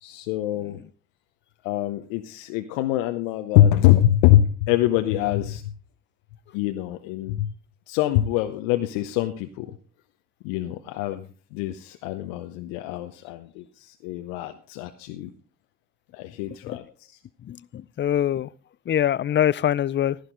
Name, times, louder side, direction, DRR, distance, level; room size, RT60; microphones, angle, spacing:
voice 1, 0.0-0.8 1.6-5.7 6.5-7.5 7.9-9.7 10.4-15.3 16.1-16.8, left 13 dB, 80° left, 0.8 m, -24 dB
voice 2, 17.4-18.5 18.9-20.2, left 10 dB, 30° left, 0.4 m, -24 dB
12.0 x 11.5 x 3.8 m
hypercardioid pair, 60°, 36 cm